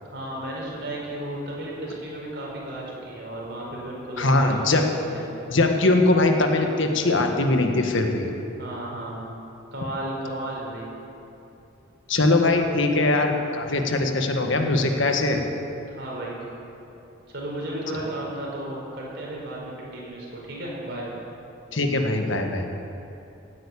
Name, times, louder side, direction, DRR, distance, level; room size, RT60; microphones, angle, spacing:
voice 1, 0.0-4.9 5.1-5.2 8.6-9.4 9.7-10.9 15.9-16.4 17.3-21.1, right 1 dB, 55° right, -4 dB, 4.9 m, -34 dB
voice 2, 4.2-4.8 5.5-8.3 12.1-15.4 21.7-22.7, left 2 dB, 70° left, 4 dB, 1.6 m, -21 dB
16.5 x 9.7 x 8.5 m, 2.8 s
head